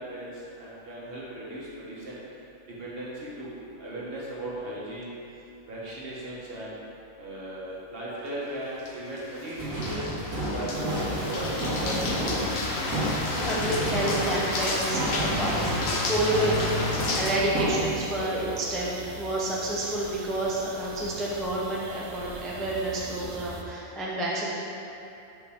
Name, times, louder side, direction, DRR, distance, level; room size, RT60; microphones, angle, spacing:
voice 1, 0.0-2.2 2.8-3.5 3.8-5.1 5.6-6.8 7.2-10.1 10.5-12.4 18.2-18.4, right 1 dB, 45° right, -7 dB, 1.3 m, -37 dB
sound 1, 8.8-17.4, left 2 dB, 55° left, 0.8 m, -31 dB
sound 2, 9.6-16.1 16.3-18.2, right 1 dB, 85° right, 2.1 m, -31 dB
sound 3, 10.7-23.6, right 3 dB, 70° right, 1.0 m, -42 dB
voice 2, 13.4-16.6 16.9-24.5, right 1 dB, ahead, -6 dB, 0.3 m, -29 dB
5.5 x 5.5 x 3.6 m, 2.8 s
omnidirectional pair, 1.5 m